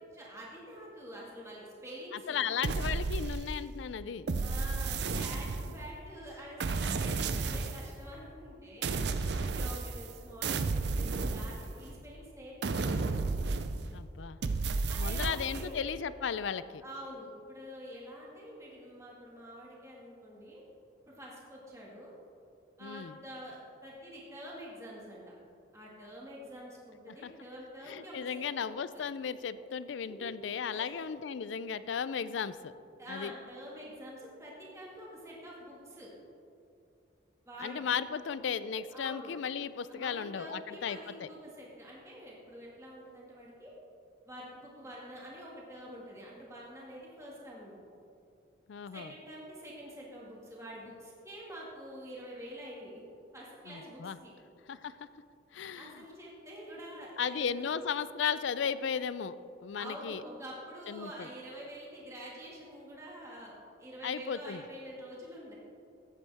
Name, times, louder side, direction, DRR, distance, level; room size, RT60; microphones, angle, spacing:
voice 1, 0.1-2.4 4.4-13.1 14.9-15.9 16.8-20.6 21.2-22.2 22.8-25.2 25.7-28.4 28.9-29.0 30.1-30.3 30.7-31.1 33.0-36.1 37.5-37.9 38.9-39.3 39.9-43.7 44.3-47.8 48.9-53.0 53.3-54.3 55.6-57.6 59.8-63.5 63.8-65.5, equal, 15° right, -5 dB, 2.0 m, -47 dB
voice 2, 2.1-4.3 13.9-14.4 15.0-16.8 22.8-23.2 27.1-27.3 27.8-32.7 33.1-33.3 37.6-41.3 48.7-49.1 53.7-54.2 54.7-55.0 55.5-56.0 57.2-59.3 59.6-60.2 60.9-61.3 64.0-64.6, left 7 dB, 75° left, 15 dB, 0.4 m, -35 dB
sound 1, 2.6-3.7 4.3-5.9 6.6-7.9 8.8-10.1 10.4-12.0 12.6-14.0 14.4-15.7, right 3 dB, 60° right, 0.5 m, -32 dB
16.0 x 8.3 x 3.5 m, 2.5 s
head